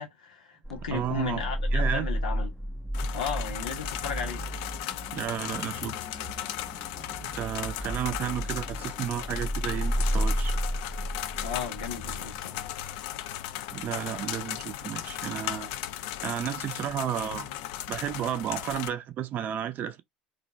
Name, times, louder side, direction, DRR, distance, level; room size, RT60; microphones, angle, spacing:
voice 1, 0.0-2.5 3.1-4.4 11.4-12.7, left 6 dB, 90° left, 1.0 m, -35 dB
sound 1, 0.6-13.3, equal, 10° left, 0.6 m, -33 dB
voice 2, 0.9-1.4 1.7-2.1 5.1-6.0 7.2-10.5 13.7-15.7 16.2-17.5 17.9-20.0, right 10 dB, 45° right, 0.5 m, -32 dB
sound 2, 2.9-18.9, left 12 dB, 70° left, 0.4 m, -37 dB
2.6 x 2.2 x 4.0 m
hypercardioid pair, 80°, 4 cm